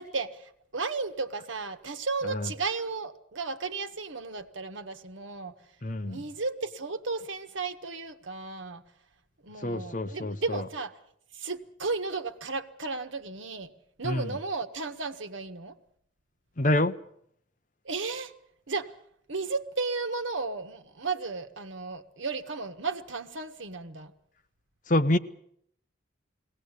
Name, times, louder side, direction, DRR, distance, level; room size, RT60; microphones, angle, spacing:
voice 1, 0.0-5.5 6.0-8.8 9.4-10.9 11.3-13.7 14.0-15.7 17.8-18.3 18.7-18.9 19.3-24.1, right 4 dB, 85° right, 1.4 m, -34 dB
voice 2, 5.8-6.2 9.6-10.6 14.0-14.3 16.6-16.9 24.9-25.2, left 1 dB, 40° left, 0.9 m, -27 dB
21.5 x 18.0 x 8.3 m
head